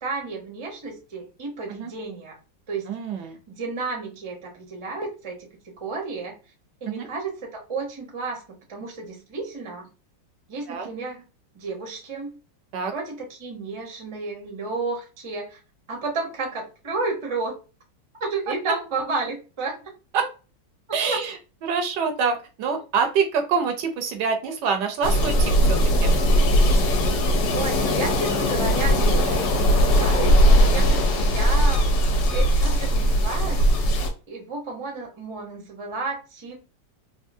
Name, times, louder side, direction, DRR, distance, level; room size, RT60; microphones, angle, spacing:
voice 1, 0.0-2.4 2.7-2.9 3.5-5.5 5.8-6.3 6.8-8.4 8.7-9.9 10.5-11.2 11.5-12.3 12.9-15.6 15.9-17.5 18.2-19.8 21.0-21.2 27.5-31.8 32.3-33.7 34.3-36.6, right 3 dB, 35° right, 0 dB, 0.5 m, -32 dB
voice 2, 2.9-3.4 6.9-7.1 10.7-10.9 12.7-12.9 20.1-20.3 20.9-21.4 21.6-26.2 29.3-29.4 30.8-31.0, right 5 dB, 75° right, 5 dB, 1.1 m, -26 dB
sound 1, 25.0-34.1, equal, 70° left, 1.3 m, -19 dB
3.5 x 2.5 x 2.6 m, 0.32 s
omnidirectional pair, 2.0 m